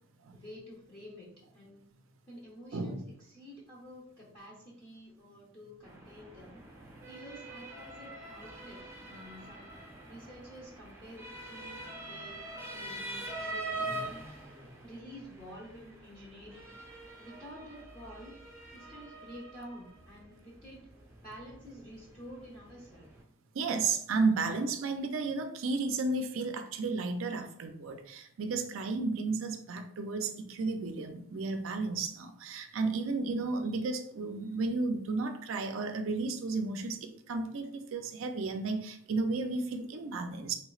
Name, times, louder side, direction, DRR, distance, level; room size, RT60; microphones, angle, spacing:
voice 1, 0.3-1.8 2.3-6.6 7.1-9.7 10.1-12.4 12.7-14.0 14.8-16.7 17.2-18.4 18.7-20.9 21.2-23.1, equal, 25° left, -8 dB, 0.9 m, -50 dB
voice 2, 2.7-3.0 23.5-40.6, right 3 dB, 75° right, 7 dB, 0.4 m, -33 dB
Motor vehicle (road) / Siren, 5.8-23.2, right 2 dB, 15° right, 0.9 m, -44 dB
3.3 x 3.0 x 2.4 m, 0.67 s
head